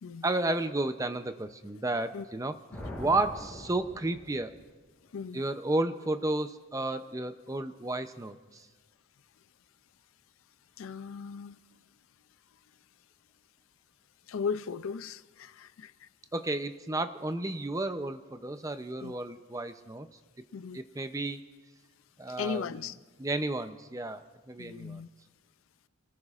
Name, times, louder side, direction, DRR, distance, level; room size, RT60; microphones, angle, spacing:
voice 1, 0.2-2.6 3.0-4.5 5.3-8.7 16.3-20.1 20.7-21.4 22.2-22.8 23.2-25.0, right 2 dB, 15° right, 0.5 m, -32 dB
sound 1, 2.7-4.7, left 1 dB, 5° left, 6.0 m, -43 dB
voice 2, 5.1-5.4 10.8-11.6 14.3-16.1 19.0-19.1 20.5-20.8 22.4-23.0 24.6-25.1, left 6 dB, 75° left, 0.4 m, -37 dB
29.0 x 19.0 x 2.5 m
head